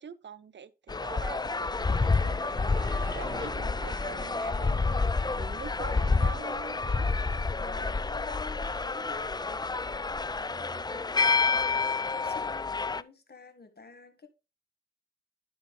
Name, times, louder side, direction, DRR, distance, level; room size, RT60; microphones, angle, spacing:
voice 1, 0.0-7.5 10.7-11.0, right 7 dB, 85° right, 0.6 m, -45 dB
sound 1, 0.9-13.0, left 4 dB, 25° left, 0.4 m, -29 dB
sound 2, 1.3-6.4, right 1 dB, 45° right, 4.2 m, -47 dB
voice 2, 7.6-9.4 10.0-10.4 11.0-11.4 12.0-14.3, left 4 dB, 60° left, 1.8 m, -48 dB
12.0 x 4.6 x 3.7 m
cardioid pair, 40°, 18 cm